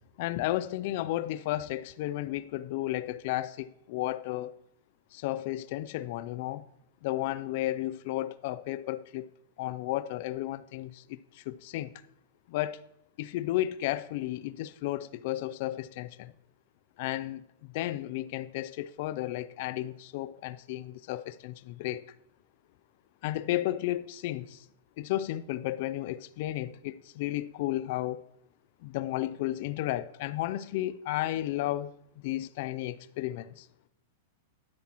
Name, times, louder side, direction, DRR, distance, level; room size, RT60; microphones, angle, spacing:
voice 1, 0.2-4.5 5.1-6.6 7.0-9.3 9.6-11.9 12.5-12.9 13.2-16.3 17.0-22.0 23.2-24.6 25.0-28.2 28.8-31.9 32.2-33.7, left 15 dB, 45° left, 0.3 m, -33 dB
12.0 x 9.5 x 2.9 m
supercardioid pair, 170°, 0 cm